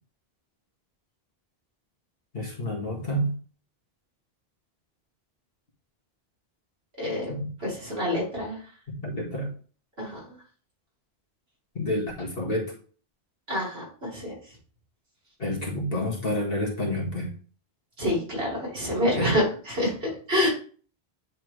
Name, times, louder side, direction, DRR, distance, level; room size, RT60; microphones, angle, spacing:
voice 1, 2.3-3.3 7.3-7.5 9.0-9.5 11.8-12.7 15.4-17.3 19.1-19.4, left 1 dB, 60° left, -1 dB, 2.0 m, -29 dB
voice 2, 7.0-8.6 10.0-10.2 13.5-13.8 14.1-14.3 18.0-20.5, left 1 dB, 70° right, -4 dB, 2.9 m, -27 dB
10.0 x 3.4 x 3.3 m, 0.41 s
omnidirectional pair, 1.1 m